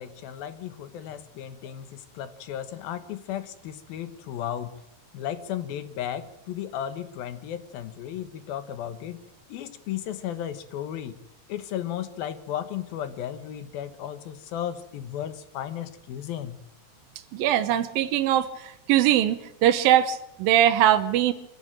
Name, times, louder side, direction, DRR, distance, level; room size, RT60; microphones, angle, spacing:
voice 1, 0.0-4.7 5.1-11.2 11.5-16.6, left 10 dB, 85° left, 11 dB, 3.2 m, -35 dB
voice 2, 17.3-18.5 18.9-21.3, right 11 dB, 80° right, 9 dB, 2.8 m, -21 dB
24.5 x 16.0 x 9.0 m, 0.85 s
omnidirectional pair, 4.1 m